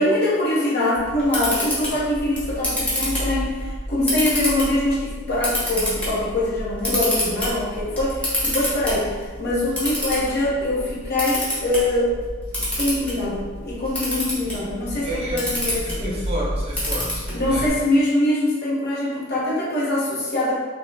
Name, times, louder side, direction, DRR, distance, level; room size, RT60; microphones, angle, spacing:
voice 1, 0.0-12.1 12.6-16.2 17.3-20.5, left 1 dB, 45° left, -6 dB, 1.2 m, -23 dB
Camera, 1.0-17.7, equal, 5° left, 1.2 m, -28 dB
voice 2, 15.0-17.7, right 1 dB, 25° right, -5 dB, 0.8 m, -31 dB
5.9 x 2.4 x 3.4 m, 1.4 s
head